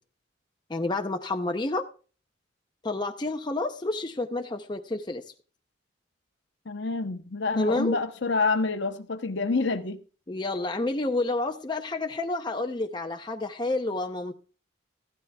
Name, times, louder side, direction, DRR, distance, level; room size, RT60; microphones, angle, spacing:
voice 1, 0.7-1.9 2.8-5.2 7.6-8.0 10.3-14.3, left 2 dB, 20° left, 0.6 m, -29 dB
voice 2, 6.7-10.0, left 3 dB, 60° left, 0.8 m, -27 dB
15.0 x 12.5 x 2.3 m
head